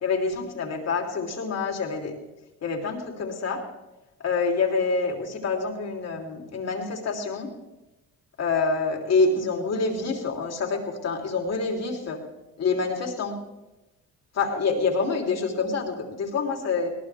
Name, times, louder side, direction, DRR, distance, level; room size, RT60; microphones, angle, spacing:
voice 1, 0.0-2.2 2.6-3.6 4.2-7.5 8.4-12.2 12.6-13.3 14.3-16.9, left 4 dB, 55° left, 2 dB, 3.3 m, -26 dB
21.5 x 17.5 x 3.5 m, 1.0 s
cardioid pair, 90°, 30 cm